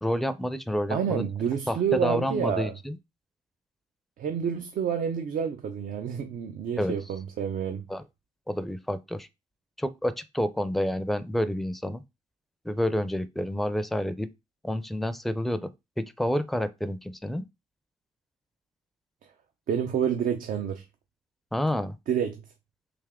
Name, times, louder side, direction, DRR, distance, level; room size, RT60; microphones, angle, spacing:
voice 1, 0.0-1.2 1.7-3.0 6.8-6.9 7.9-8.0 8.5-9.3 9.8-12.0 12.6-14.3 14.6-15.7 16.0-17.4 21.5-22.0, equal, ahead, 0.4 m, -29 dB
voice 2, 0.9-2.7 4.2-7.8 19.7-20.8 22.1-22.4, right 8 dB, 65° right, 0.5 m, -28 dB
3.5 x 2.8 x 3.5 m
supercardioid pair, 60°, 15 cm